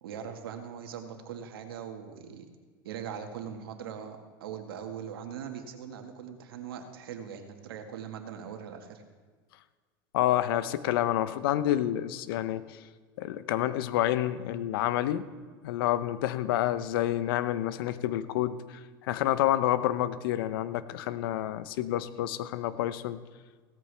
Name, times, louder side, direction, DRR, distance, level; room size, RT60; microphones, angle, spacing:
voice 1, 0.0-2.5 2.8-9.0, right 8 dB, 85° right, 5 dB, 1.7 m, -41 dB
voice 2, 10.1-12.8 13.2-15.3 15.6-23.2, left 13 dB, 75° left, 14 dB, 0.8 m, -29 dB
17.0 x 14.0 x 3.4 m, 1.5 s
hypercardioid pair, 85°, 12 cm